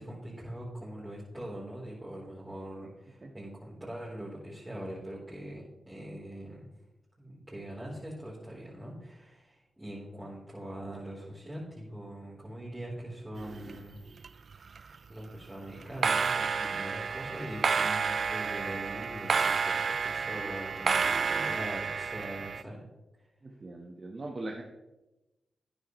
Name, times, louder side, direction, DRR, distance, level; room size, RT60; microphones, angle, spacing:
voice 1, 0.0-6.7 7.2-14.0 14.7-22.8 23.2-23.3, right 1 dB, 15° right, -8 dB, 3.7 m, -42 dB
sound 1, 13.4-14.3 14.5-15.0 15.8-22.6, right 5 dB, 65° right, 0.3 m, -30 dB
voice 2, 23.4-24.6, right 2 dB, 45° right, 0 dB, 1.4 m, -40 dB
12.5 x 9.5 x 3.2 m, 1.0 s
cardioid pair, 50°, 0 cm